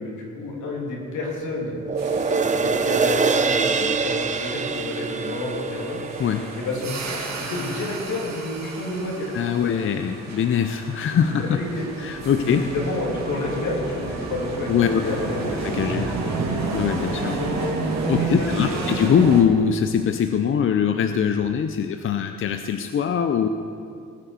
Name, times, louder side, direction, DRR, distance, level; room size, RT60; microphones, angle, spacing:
voice 1, 0.0-1.8 2.2-6.0 6.6-9.3 11.1-11.8 12.4-15.6 16.2-16.8 18.2-18.9, left 2 dB, 75° left, -1 dB, 3.2 m, -30 dB
sound 1, 1.8-8.4 8.8-8.9, right 4 dB, 25° right, 0.7 m, -25 dB
sound 2, 2.0-19.4, right 3 dB, 60° right, 2.4 m, -31 dB
voice 2, 9.3-11.6 12.0-12.7 14.7-15.0 15.6-16.1 16.7-17.4 18.1-23.5, left 8 dB, 45° left, 7 dB, 0.6 m, -22 dB
19.0 x 6.4 x 6.9 m, 2.4 s
cardioid pair, 120°, 30 cm